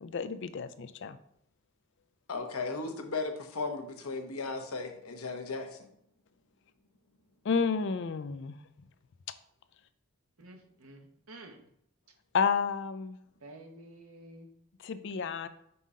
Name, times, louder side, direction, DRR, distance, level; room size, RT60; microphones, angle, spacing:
voice 1, 0.0-1.2 7.5-8.6 12.3-13.2 14.8-15.5, left 5 dB, 55° left, 12 dB, 0.4 m, -31 dB
voice 2, 2.3-5.9, left 3 dB, 80° left, 5 dB, 0.9 m, -36 dB
voice 3, 10.4-11.7 13.4-14.5, right 1 dB, 75° right, 4 dB, 1.0 m, -51 dB
5.5 x 5.5 x 3.6 m, 0.74 s
head